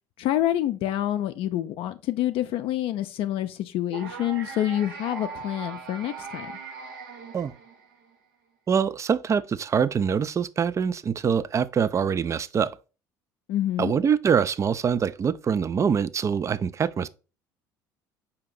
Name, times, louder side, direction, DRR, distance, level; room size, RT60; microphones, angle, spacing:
voice 1, 0.2-6.5 13.5-13.9, left 12 dB, 60° left, 0.4 m, -27 dB
sound 1, 3.9-8.1, right 5 dB, 85° right, 0.7 m, -39 dB
voice 2, 8.7-12.8 13.8-17.1, right 7 dB, 30° right, 0.3 m, -24 dB
4.9 x 2.8 x 3.8 m
hypercardioid pair, 70°, 10 cm